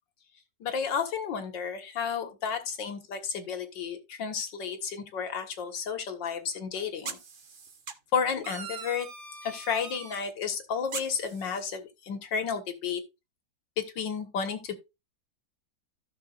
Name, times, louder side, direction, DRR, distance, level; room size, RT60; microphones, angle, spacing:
voice 1, 0.6-7.2 8.1-9.1 9.4-13.0 13.8-14.7, left 6 dB, 90° left, 2.2 m, -32 dB
sound 1, 6.3-6.4 7.0-7.9 8.4-10.2 10.9-11.6, right 5 dB, 35° right, 0.9 m, -41 dB
15.5 x 6.1 x 2.4 m
omnidirectional pair, 1.9 m